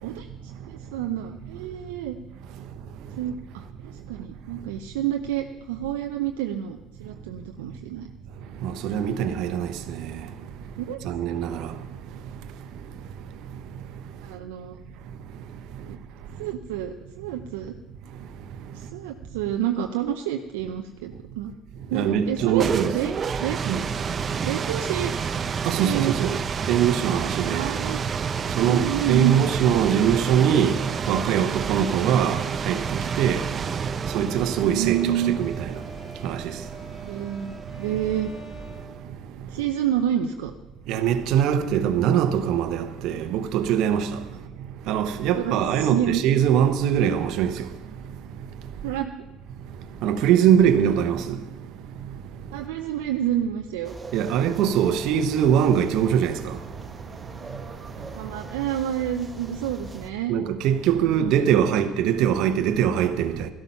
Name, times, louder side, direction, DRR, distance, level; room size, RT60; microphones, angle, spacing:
voice 1, 0.0-2.2 3.2-8.1 10.8-11.2 14.2-14.8 15.8-16.0 16.4-17.7 18.7-21.5 21.9-22.7 22.9-23.6 24.4-25.1 25.7-26.2 27.4-28.0 28.7-29.4 34.6-35.5 37.1-38.3 39.5-40.5 45.4-46.2 48.8-49.2 52.5-54.0 58.1-60.4 61.1-61.7, right 11 dB, 85° right, 0.6 m, -29 dB
voice 2, 8.6-9.7 11.0-11.7 21.9-22.9 23.6-23.8 25.7-26.4 26.7-27.6 28.6-30.8 31.1-32.8 33.2-33.4 34.1-35.5 36.2-36.4 40.9-44.1 44.9-47.5 50.0-51.4 54.1-56.6 60.3-63.5, right 9 dB, 70° right, 1.0 m, -22 dB
sound 1, 22.3-39.0, right 6 dB, 40° right, 0.7 m, -30 dB
Bowed string instrument, 23.8-39.6, equal, 45° left, 3.6 m, -48 dB
sound 2, 53.8-60.1, right 3 dB, 25° right, 1.3 m, -42 dB
13.0 x 12.5 x 5.6 m
hypercardioid pair, 70°, 0 cm